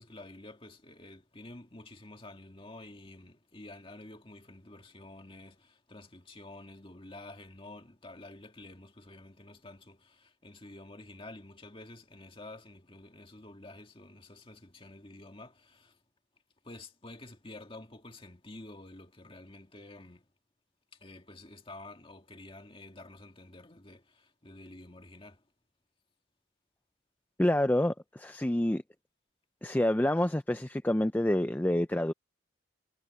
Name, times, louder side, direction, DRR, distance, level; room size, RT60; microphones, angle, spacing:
voice 1, 0.0-16.0 16.6-20.2 21.0-25.4, left 2 dB, 25° left, 2.0 m, -49 dB
voice 2, 27.4-28.8 29.6-32.1, left 1 dB, 10° left, 0.4 m, -27 dB
head